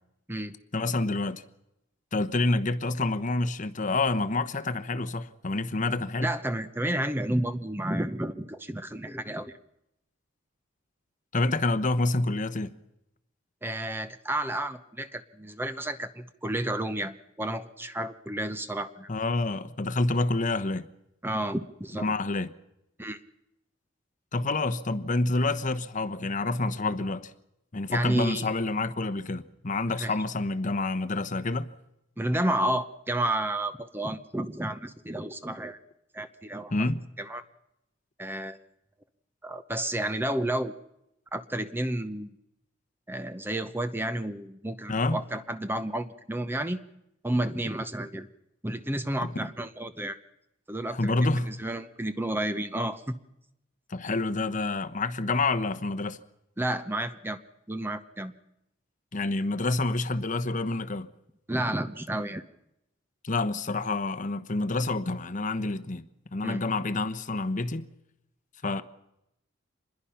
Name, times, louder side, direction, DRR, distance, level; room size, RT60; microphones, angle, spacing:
voice 1, 0.7-1.4 2.1-6.3 11.3-12.7 19.1-20.9 22.0-22.5 24.3-27.3 27.7-31.7 36.7-37.0 44.9-45.2 49.2-49.3 50.9-51.5 53.9-56.2 59.1-61.1 63.2-66.0 66.3-67.9 68.6-68.8, left 2 dB, 40° left, 1.0 m, -28 dB
voice 2, 6.2-9.5 13.6-19.1 21.2-22.1 23.0-23.2 27.9-28.5 30.0-30.2 32.2-35.8 36.1-36.8 37.2-37.4 38.2-38.6 39.4-40.7 41.3-42.3 43.1-46.8 47.2-48.3 48.6-50.2 50.7-53.2 56.6-57.4 57.7-58.3 61.5-62.4 66.4-66.6, right 1 dB, 10° right, 0.8 m, -31 dB
26.0 x 21.5 x 5.8 m
head